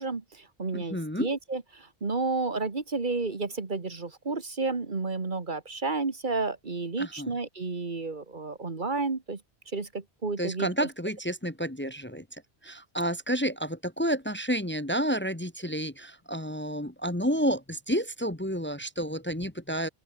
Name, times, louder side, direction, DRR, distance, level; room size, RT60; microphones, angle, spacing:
voice 1, 0.0-9.4 9.7-10.7, right 3 dB, 50° right, 1.8 m, -31 dB
voice 2, 0.7-1.3 7.0-7.3 10.4-12.2 12.6-19.9, equal, 10° left, 1.3 m, -30 dB
open air
omnidirectional pair, 1.0 m